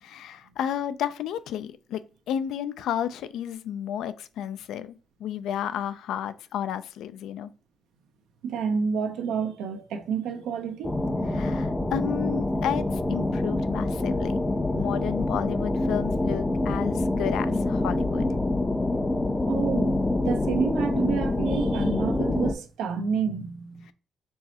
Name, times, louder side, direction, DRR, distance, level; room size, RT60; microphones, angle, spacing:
voice 1, 0.0-2.0 2.3-7.5 11.3-14.4 14.8-18.4 23.9-24.0, left 10 dB, 80° left, 0.3 m, -32 dB
voice 2, 8.4-11.0 19.5-20.0 20.2-23.8, right 6 dB, 90° right, 0.6 m, -29 dB
sound 1, 10.8-22.5, left 2 dB, 15° left, 0.5 m, -26 dB
4.5 x 3.1 x 2.8 m
cardioid pair, 90°, 0 cm